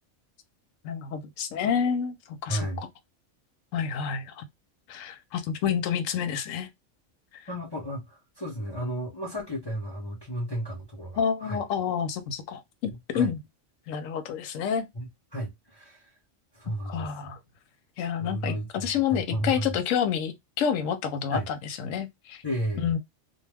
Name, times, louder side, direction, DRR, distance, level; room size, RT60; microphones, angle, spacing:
voice 1, 0.8-2.9 3.7-4.5 4.9-6.7 7.3-7.5 11.2-13.4 13.9-14.9 16.9-17.4 18.0-22.4 22.8-23.0, left 7 dB, 90° left, 1.0 m, -29 dB
voice 2, 2.5-2.9 7.5-11.6 12.9-13.3 14.9-16.1 16.5-17.3 18.2-19.8 21.3-21.5 22.4-22.9, right 1 dB, 25° left, 0.6 m, -33 dB
2.2 x 2.2 x 3.2 m
omnidirectional pair, 1.3 m